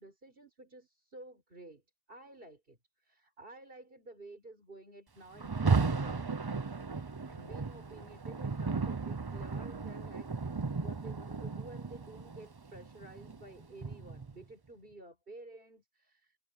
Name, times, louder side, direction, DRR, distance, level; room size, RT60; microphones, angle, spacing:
voice 1, 0.0-1.8 2.1-6.3 7.3-16.4, right 2 dB, 65° right, 4.7 m, -52 dB
Rain, 5.4-14.4, right 4 dB, 25° right, 0.6 m, -35 dB
omnidirectional pair, 1.0 m